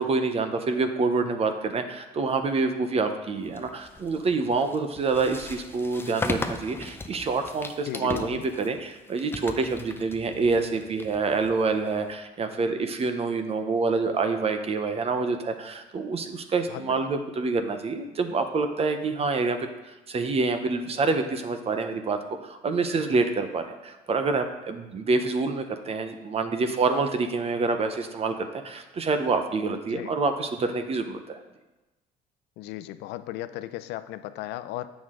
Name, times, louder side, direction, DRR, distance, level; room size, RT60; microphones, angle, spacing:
voice 1, 0.0-19.6 19.8-31.4, right 4 dB, 35° right, 7 dB, 0.7 m, -27 dB
sound 1, 3.5-12.1, left 3 dB, 15° left, 0.6 m, -38 dB
voice 2, 7.8-8.4 16.7-17.1 29.9-30.1 32.6-34.9, left 14 dB, 85° left, 13 dB, 0.4 m, -36 dB
8.1 x 6.1 x 3.7 m, 1.1 s
cardioid pair, 110°, 17 cm